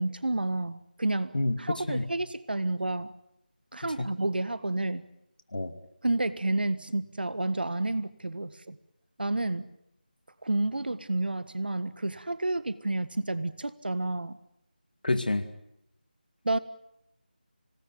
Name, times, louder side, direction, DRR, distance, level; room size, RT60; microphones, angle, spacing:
voice 1, 0.0-3.1 3.7-5.0 6.0-8.8 9.2-9.7 10.4-14.4 16.4-16.6, right 2 dB, 70° right, 15 dB, 1.6 m, -30 dB
voice 2, 1.3-2.0 4.0-4.1 5.5-5.7 15.0-15.5, left 2 dB, 60° left, 10 dB, 2.5 m, -28 dB
25.0 x 19.0 x 9.4 m, 0.81 s
figure-of-eight pair, 165°, 5 cm